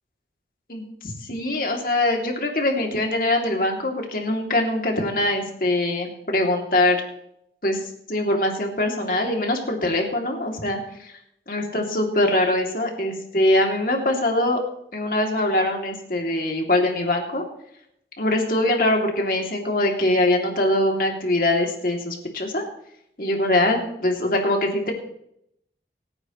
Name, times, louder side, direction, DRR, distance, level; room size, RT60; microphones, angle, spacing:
voice 1, 0.7-7.0 7.6-7.8 8.1-11.1 11.5-14.6 14.9-17.4 18.2-22.6 23.2-24.9, left 1 dB, 50° left, 1 dB, 2.6 m, -23 dB
26.0 x 9.9 x 3.1 m, 0.75 s
head